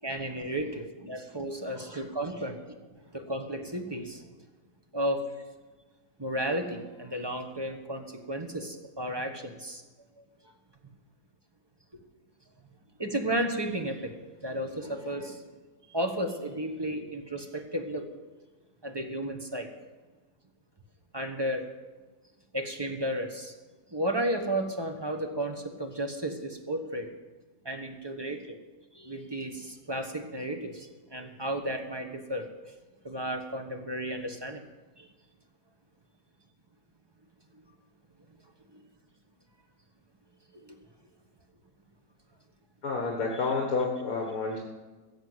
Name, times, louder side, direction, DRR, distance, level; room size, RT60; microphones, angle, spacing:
voice 1, 0.0-4.3 4.9-5.2 6.2-9.8 10.2-10.3 13.0-14.2 14.4-15.4 15.9-18.1 18.8-19.7 21.1-21.7 22.5-23.5 23.9-27.1 27.6-28.6 28.9-32.5 33.0-34.6 35.0-35.1 38.7-38.8 40.5-40.8, right 1 dB, 15° right, 4 dB, 1.2 m, -33 dB
voice 2, 42.8-44.6, left 4 dB, 65° left, 1 dB, 1.9 m, -29 dB
16.5 x 7.2 x 8.0 m, 1.3 s
omnidirectional pair, 1.6 m